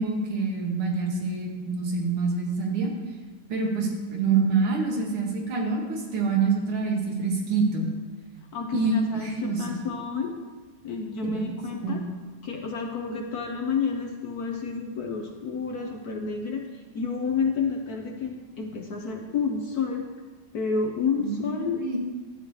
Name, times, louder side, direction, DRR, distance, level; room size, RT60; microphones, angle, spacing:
voice 1, 0.0-2.9 3.5-7.9 8.7-9.8 11.2-11.4 11.8-12.0 21.2-22.0, right 4 dB, 85° right, 0 dB, 2.3 m, -26 dB
voice 2, 8.5-10.3 10.8-12.0 12.4-20.1 20.5-22.0, left 5 dB, 60° left, 2 dB, 1.0 m, -30 dB
12.0 x 8.3 x 3.2 m, 1.3 s
omnidirectional pair, 2.3 m